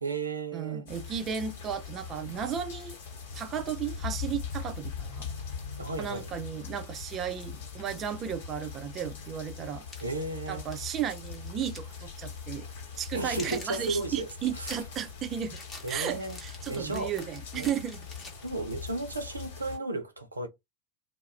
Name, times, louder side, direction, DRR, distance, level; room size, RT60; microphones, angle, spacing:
voice 1, 0.0-0.8 5.8-6.3 10.0-10.7 13.1-14.3 14.6-14.8 15.8-16.4 16.7-17.1 17.6-17.7 18.4-20.5, right 2 dB, 80° right, 0.5 m, -34 dB
voice 2, 0.5-3.0 3.3-5.3 6.0-9.8 10.5-12.7 13.0-15.6 15.9-18.1, right 8 dB, 30° right, 0.4 m, -34 dB
sound 1, 0.9-19.8, left 6 dB, 55° left, 1.0 m, -41 dB
sound 2, 9.9-12.0 12.2-12.4 12.8-18.9, left 2 dB, 20° left, 0.9 m, -48 dB
2.3 x 2.0 x 3.0 m
figure-of-eight pair, 90°, 0 cm